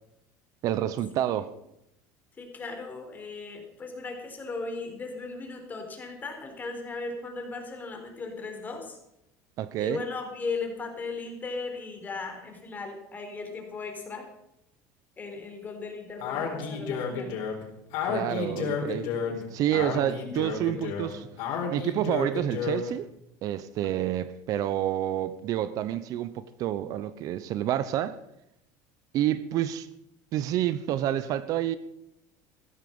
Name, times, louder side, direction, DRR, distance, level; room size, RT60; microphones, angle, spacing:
voice 1, 0.6-1.5 9.6-10.0 18.0-21.3 21.7-23.1 23.4-28.2 29.1-29.9 30.3-31.8, right 12 dB, 55° right, 0.8 m, -29 dB
voice 2, 2.4-9.0 9.8-14.3 15.2-17.3 18.5-18.7 23.8-24.1, left 3 dB, 25° left, 4.0 m, -37 dB
Speech, 16.2-23.0, left 6 dB, 70° left, 4.2 m, -32 dB
15.5 x 14.0 x 5.4 m
cardioid pair, 130°, 7 cm